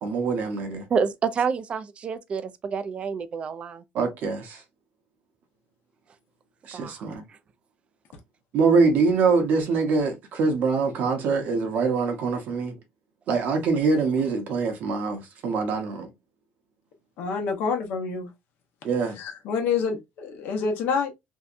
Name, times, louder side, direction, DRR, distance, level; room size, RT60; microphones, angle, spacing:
voice 1, 0.0-0.8 3.9-4.6 6.7-7.2 8.5-12.7 13.3-16.1 18.8-19.2, right 4 dB, 55° right, 0.8 m, -24 dB
voice 2, 0.9-3.8 6.7-7.1, right 6 dB, 30° right, 0.3 m, -28 dB
voice 3, 17.2-18.3 19.1-21.1, left 5 dB, 65° left, 0.8 m, -27 dB
2.7 x 2.2 x 2.4 m
cardioid pair, 130°, 4 cm